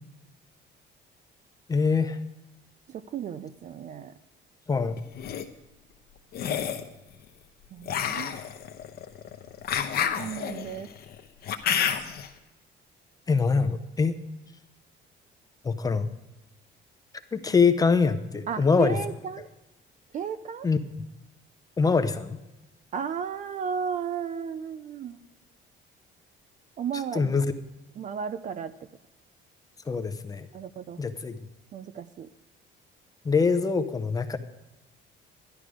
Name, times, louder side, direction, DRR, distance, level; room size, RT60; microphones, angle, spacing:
voice 1, 1.7-2.2 4.7-5.0 13.3-14.2 15.6-16.1 17.3-19.0 20.6-20.8 21.8-22.4 27.1-27.5 29.9-30.5 31.0-31.4 33.2-34.4, left 5 dB, 15° left, 9 dB, 0.6 m, -24 dB
voice 2, 2.9-4.1 7.7-8.3 10.0-10.9 18.5-19.5 20.1-20.7 22.9-25.2 26.8-27.4 28.0-28.7 30.5-31.0 31.7-32.3, right 7 dB, 40° right, 14 dB, 0.4 m, -34 dB
sound 1, 5.0-5.4 6.3-6.9 7.8-12.3, left 8 dB, 50° left, 0.9 m, -29 dB
12.0 x 11.0 x 4.9 m, 1.0 s
cardioid pair, 175°, 21 cm